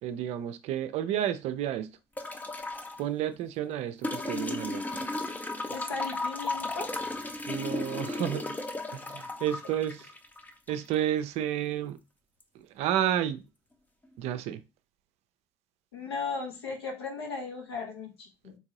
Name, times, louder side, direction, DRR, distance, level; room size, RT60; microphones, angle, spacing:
voice 1, 0.0-1.9 3.0-5.0 7.5-8.6 8.9-10.1 10.7-12.0 12.5-13.4 14.2-14.6, right 11 dB, 55° right, 0.4 m, -31 dB
sound 1, 2.2-3.0 4.0-11.0 12.4-12.5, left 2 dB, 10° left, 0.5 m, -35 dB
voice 2, 5.7-6.9 15.9-18.6, left 4 dB, 80° left, 1.0 m, -36 dB
3.6 x 3.0 x 2.8 m
figure-of-eight pair, 55°, 13 cm